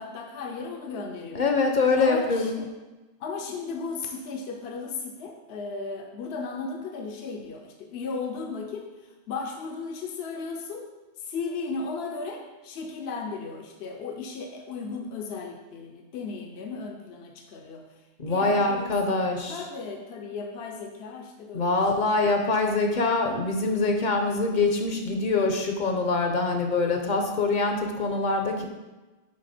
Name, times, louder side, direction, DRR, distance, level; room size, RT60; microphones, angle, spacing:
voice 1, 0.0-1.4 2.0-2.7 3.2-8.9 9.3-10.9 11.2-17.8 18.3-19.2 19.5-21.8 25.1-25.2, left 4 dB, 70° left, 3 dB, 0.9 m, -35 dB
voice 2, 1.3-2.5 18.2-19.6 21.5-28.7, left 3 dB, 50° left, 3 dB, 0.8 m, -24 dB
6.4 x 4.8 x 4.2 m, 1.2 s
omnidirectional pair, 1.1 m